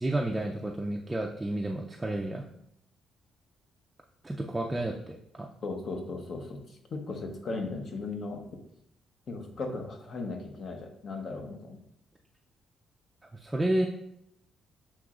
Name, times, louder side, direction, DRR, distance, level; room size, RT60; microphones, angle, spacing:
voice 1, 0.0-2.4 4.2-5.5 13.3-13.9, right 1 dB, 15° right, 0 dB, 0.4 m, -31 dB
voice 2, 5.6-8.5 9.3-11.8, left 3 dB, 50° left, 4 dB, 0.8 m, -37 dB
7.4 x 3.0 x 2.4 m, 0.76 s
cardioid pair, 90°, 0 cm